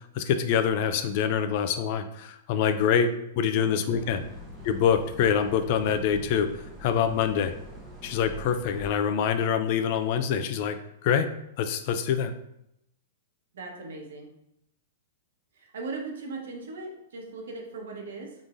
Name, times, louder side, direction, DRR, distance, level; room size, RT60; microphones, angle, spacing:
voice 1, 0.1-4.2 4.6-6.5 6.8-7.5 8.0-10.8 11.0-11.3 11.6-12.3, left 7 dB, 40° left, 9 dB, 0.4 m, -25 dB
voice 2, 3.5-4.0 13.5-14.3 15.5-18.3, right 3 dB, 80° right, 1 dB, 1.1 m, -39 dB
sound 1, 3.9-8.9, equal, 15° right, 0.9 m, -44 dB
4.7 x 3.7 x 2.6 m, 0.81 s
supercardioid pair, 160°, 0 cm